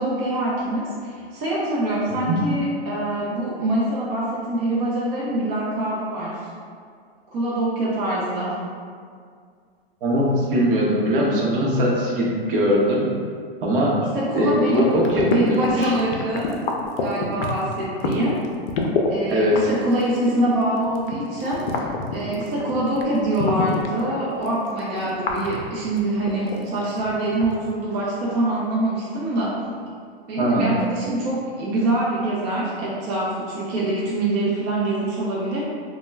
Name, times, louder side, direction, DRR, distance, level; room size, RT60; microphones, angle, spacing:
voice 1, 0.0-6.4 7.3-8.6 14.1-14.9 15.3-16.5 17.0-18.4 19.1-29.5 30.3-35.6, right 1 dB, 35° right, -7 dB, 0.5 m, -24 dB
voice 2, 2.1-2.4 10.0-13.1 13.6-14.0 14.3-15.9 19.3-19.7 30.4-30.8, equal, 60° right, -4 dB, 0.8 m, -21 dB
sound 1, 14.7-19.1 19.4-24.0 24.4-27.1 27.3-27.5, left 5 dB, 65° left, 0.5 m, -27 dB
2.1 x 2.1 x 3.2 m, 2.1 s
hypercardioid pair, 135°, 31 cm